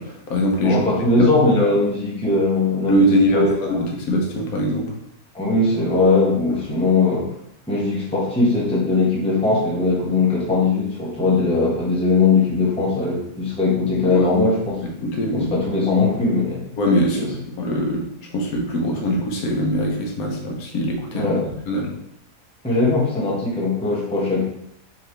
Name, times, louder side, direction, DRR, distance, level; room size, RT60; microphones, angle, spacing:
voice 1, 0.0-0.9 1.2-1.3 1.6-1.7 2.9-4.9 14.1-14.3 15.0-15.5 16.8-18.0 18.3-21.9, equal, 65° left, 0 dB, 1.3 m, -22 dB
voice 2, 0.6-3.8 5.3-7.2 7.7-14.8 15.3-16.6 17.2-17.3 21.1-21.5 22.6-24.4, left 3 dB, 5° left, -5 dB, 0.8 m, -20 dB
4.7 x 2.9 x 3.3 m, 0.73 s
omnidirectional pair, 1.7 m